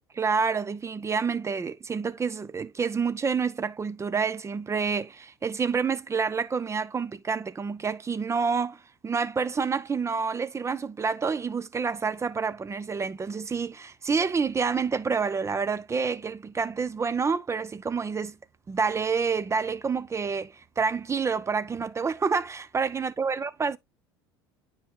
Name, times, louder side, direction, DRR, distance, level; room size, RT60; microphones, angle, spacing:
voice 1, 0.2-18.4 18.7-23.8, right 5 dB, 20° right, 0.6 m, -28 dB
9.6 x 4.7 x 2.3 m
hypercardioid pair, 70°, 13 cm